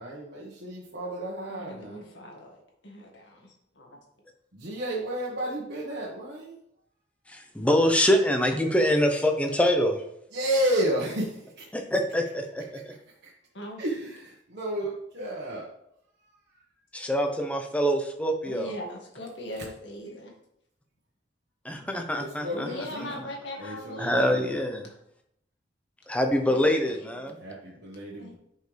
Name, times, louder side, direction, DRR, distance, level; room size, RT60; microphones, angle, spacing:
voice 1, 0.0-2.0 4.5-6.6 10.3-11.6 13.2-13.3 13.8-15.7 22.2-23.1 23.6-24.5 27.4-28.3, right 1 dB, 60° right, -5 dB, 1.5 m, -32 dB
voice 2, 1.5-4.0 13.5-13.8 18.4-20.3 22.5-24.5 26.5-27.3 28.2-28.3, left 1 dB, 70° left, 0 dB, 2.0 m, -41 dB
voice 3, 7.3-10.0 11.7-12.9 16.9-18.7 21.6-22.7 24.0-24.9 26.1-27.4, equal, 5° left, 4 dB, 0.9 m, -25 dB
10.0 x 5.4 x 3.4 m, 0.76 s
head